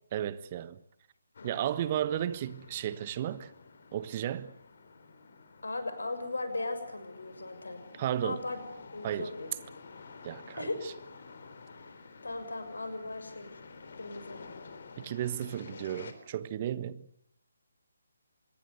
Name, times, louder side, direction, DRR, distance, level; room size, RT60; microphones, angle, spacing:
voice 1, 0.1-0.8 1.4-3.5 3.9-4.5 8.0-8.4 9.0-9.3 10.2-10.9 15.0-17.1, right 11 dB, 30° right, 1.3 m, -34 dB
sound 1, 1.3-16.1, left 4 dB, 50° left, 3.7 m, -50 dB
voice 2, 5.6-7.8 8.2-8.6 8.9-9.5 10.6-10.8 11.8-11.9 12.2-13.6 14.0-14.4, left 2 dB, 70° left, 6.6 m, -37 dB
25.5 x 22.0 x 8.0 m
figure-of-eight pair, 145°, 0 cm